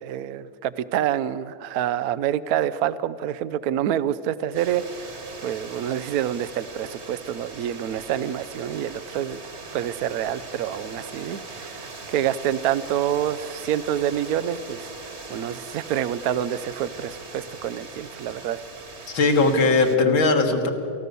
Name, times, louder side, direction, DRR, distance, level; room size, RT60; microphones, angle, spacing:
voice 1, 0.0-5.1 5.4-9.4 9.7-11.8 12.1-14.9 15.3-18.6, right 10 dB, 70° right, 15 dB, 0.9 m, -27 dB
sound 1, 4.5-20.0, right 4 dB, 35° right, 1.6 m, -40 dB
voice 2, 19.1-20.7, left 3 dB, 70° left, 3 dB, 2.6 m, -19 dB
29.5 x 14.5 x 6.8 m, 2.6 s
omnidirectional pair, 2.3 m